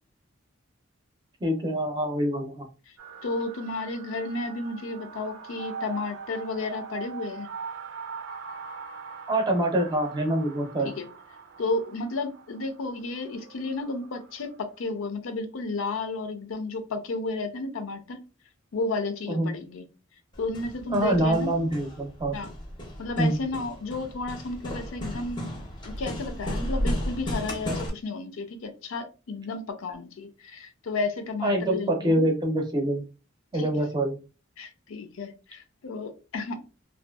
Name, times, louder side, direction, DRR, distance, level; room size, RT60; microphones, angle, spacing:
voice 1, 1.4-2.7 9.3-10.9 19.3-19.5 20.9-22.4 23.2-23.4 31.4-33.1 33.5-34.2, right 1 dB, 20° right, 2 dB, 0.5 m, -25 dB
sound 1, 3.0-14.6, right 5 dB, 75° right, 0.5 m, -42 dB
voice 2, 3.2-7.5 10.8-11.1 11.6-18.2 18.7-19.8 20.4-21.8 22.3-22.5 23.0-32.2 33.5-33.7 34.6-36.6, left 3 dB, 80° left, 7 dB, 0.5 m, -32 dB
Hammer, 20.3-27.9, equal, 20° left, 0.5 m, -34 dB
2.6 x 2.2 x 2.2 m, 0.32 s
head